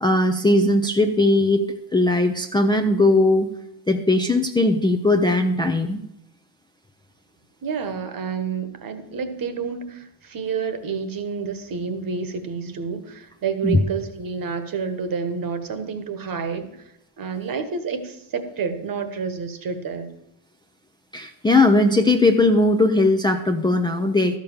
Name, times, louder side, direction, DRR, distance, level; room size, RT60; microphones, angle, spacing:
voice 1, 0.0-1.6 1.9-3.5 3.9-6.0 13.6-13.8 21.1-24.4, left 2 dB, 10° left, 3 dB, 0.5 m, -19 dB
voice 2, 7.6-16.7 17.2-20.1, right 5 dB, 45° right, 10 dB, 1.3 m, -29 dB
12.0 x 5.2 x 7.1 m, 0.82 s
cardioid pair, 105°, 48 cm